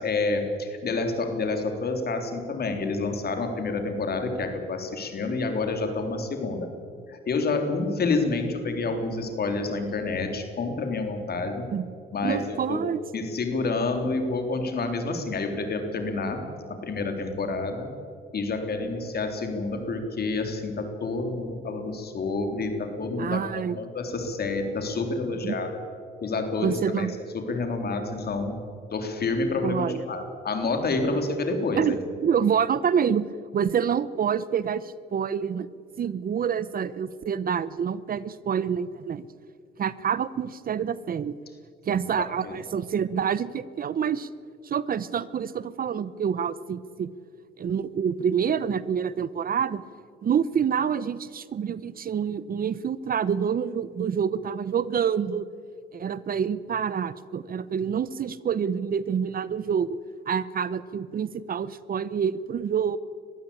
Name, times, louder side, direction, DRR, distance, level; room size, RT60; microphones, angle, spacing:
voice 1, 0.0-6.7 7.1-11.6 12.1-12.8 13.1-16.4 16.7-17.9 18.3-25.8 26.2-27.1 27.3-28.6 28.9-32.0 41.9-42.0 42.4-42.6, left 3 dB, 55° left, 5 dB, 3.7 m, -28 dB
voice 2, 12.2-13.0 23.2-23.8 25.4-25.6 26.6-27.1 29.6-30.0 31.8-33.2 33.5-35.7 36.0-39.3 39.8-41.4 41.9-44.3 44.6-47.1 47.6-49.8 50.2-55.5 55.9-60.0 60.3-63.0, right 7 dB, 45° right, 17 dB, 0.8 m, -27 dB
21.5 x 15.0 x 8.7 m, 2.3 s
cardioid pair, 90°, 20 cm